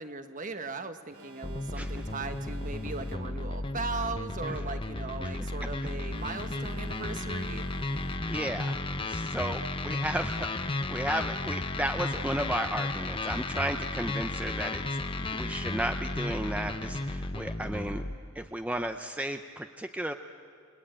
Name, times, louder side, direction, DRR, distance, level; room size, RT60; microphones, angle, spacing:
voice 1, 0.0-7.7, right 3 dB, 35° right, 8 dB, 1.2 m, -38 dB
Alarm, 1.1-3.6 6.1-8.6, right 2 dB, 75° right, 2.6 m, -52 dB
sound 1, 1.4-18.2, left 2 dB, 25° left, 0.8 m, -34 dB
voice 2, 7.9-8.8 9.1-14.8 15.2-18.0 18.4-20.1, right 1 dB, 5° right, 7 dB, 0.6 m, -34 dB
29.5 x 21.0 x 8.9 m, 2.2 s
head